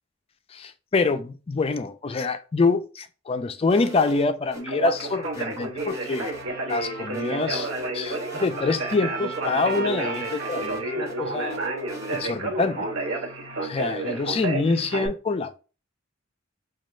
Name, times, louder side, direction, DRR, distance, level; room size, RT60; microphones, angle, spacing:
voice 1, 0.5-6.3 6.6-7.7 7.9-11.6 12.1-12.9 13.6-15.6, left 3 dB, 30° left, 0.3 m, -26 dB
sound 1, 3.7-4.6 5.0-6.4 6.7-6.8 7.1-8.6 8.9-9.0 9.3-11.2 11.5-12.3, right 2 dB, 15° right, 0.8 m, -42 dB
Conversation, 4.6-15.1, right 2 dB, 75° right, 1.0 m, -31 dB
Trumpet, 6.1-14.1, right 3 dB, 45° right, 0.7 m, -39 dB
5.1 x 2.3 x 3.1 m
head